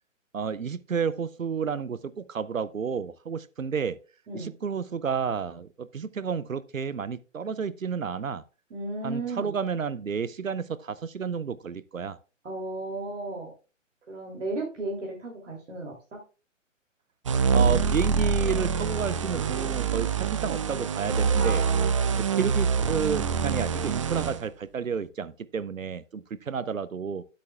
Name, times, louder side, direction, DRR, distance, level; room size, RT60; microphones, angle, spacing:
voice 1, 0.3-4.0 4.3-8.4 9.0-12.2 17.5-21.6 22.1-27.2, right 6 dB, 85° right, 0.7 m, -31 dB
voice 2, 8.7-9.5 12.4-13.5 14.1-16.2 21.4-21.9 26.6-26.7, right 2 dB, 65° right, 3.0 m, -34 dB
sound 1, 17.3-24.4, right 5 dB, 25° right, 0.5 m, -25 dB
12.5 x 8.4 x 2.4 m
figure-of-eight pair, 130°, 39 cm